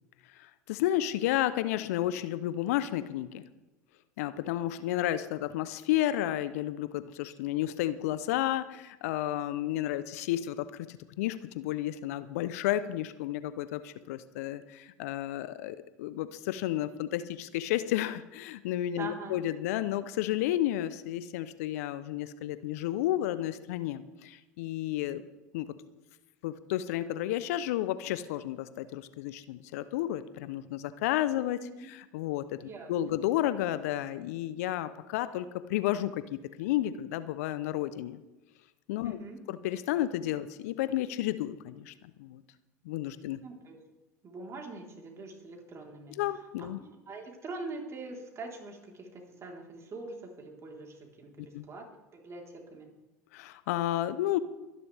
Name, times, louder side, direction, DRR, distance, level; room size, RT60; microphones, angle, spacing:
voice 1, 0.3-3.4 4.2-25.2 25.5-25.7 26.4-31.6 31.9-38.2 38.9-39.2 39.5-42.4 42.8-43.4 46.2-46.8 51.5-51.7 53.3-54.4, left 13 dB, 70° left, 14 dB, 0.7 m, -32 dB
voice 2, 19.0-19.4 31.3-31.9 32.6-33.2 39.0-39.4 43.4-43.8 44.2-46.2 46.6-52.9, right 3 dB, 35° right, 0 dB, 3.9 m, -44 dB
23.5 x 11.0 x 3.5 m, 1.1 s
hypercardioid pair, 75°, 9 cm